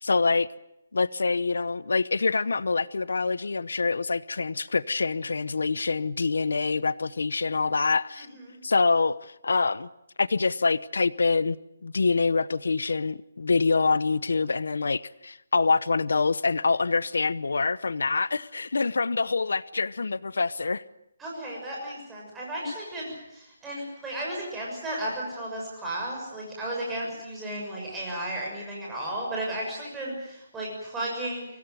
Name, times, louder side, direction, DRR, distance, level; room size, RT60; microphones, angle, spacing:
voice 1, 0.0-0.5 0.9-8.3 8.6-9.9 10.2-11.6 11.8-20.8 22.6-22.7, left 4 dB, 90° left, 18 dB, 0.8 m, -25 dB
voice 2, 8.2-8.6 21.2-31.5, right 1 dB, 5° right, -3 dB, 6.5 m, -34 dB
24.5 x 18.0 x 9.2 m, 0.85 s
hypercardioid pair, 175°, 0 cm